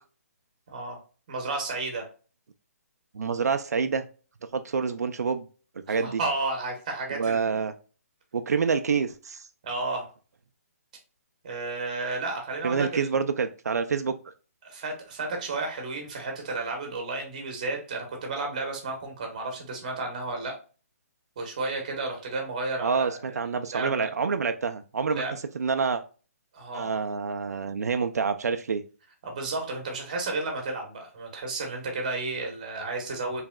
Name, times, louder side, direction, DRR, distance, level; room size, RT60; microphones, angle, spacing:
voice 1, 0.7-1.0 1.3-2.1 5.9-7.5 9.6-10.1 11.4-13.1 14.6-20.6 21.4-24.1 25.2-25.4 26.5-26.9 29.2-33.4, right 3 dB, 25° right, 2 dB, 1.0 m, -32 dB
voice 2, 3.1-4.0 4.5-5.4 5.9-6.2 7.2-7.7 8.3-9.4 12.6-14.1 22.8-25.2 25.5-26.0 26.7-28.8, right 5 dB, 85° right, 8 dB, 0.5 m, -27 dB
4.7 x 3.3 x 2.2 m, 0.36 s
hypercardioid pair, 180°, 8 cm